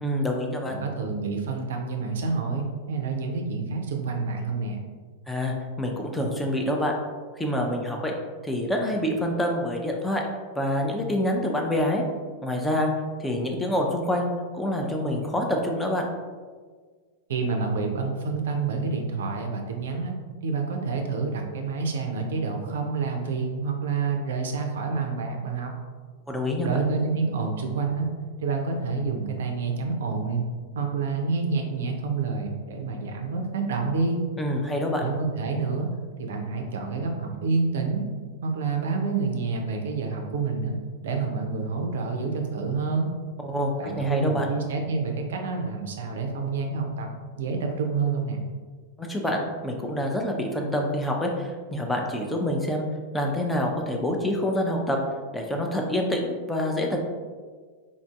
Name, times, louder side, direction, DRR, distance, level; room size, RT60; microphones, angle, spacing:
voice 1, 0.0-0.8 5.3-6.9 7.4-8.1 8.4-10.3 10.6-12.0 12.4-12.9 13.2-16.1 26.3-26.8 34.4-35.1 43.4-44.5 49.0-52.9 53.1-55.0 55.3-57.0, left 1 dB, 5° left, 1 dB, 0.4 m, -26 dB
voice 2, 0.7-4.8 17.3-20.1 20.4-25.7 26.6-28.1 28.4-30.5 30.8-34.2 35.0-35.9 36.2-38.0 38.4-40.8 41.0-43.1 43.8-47.1 47.4-48.4, right 4 dB, 60° right, 3 dB, 0.4 m, -28 dB
3.8 x 2.4 x 2.3 m, 1.5 s
figure-of-eight pair, 90°, 0 cm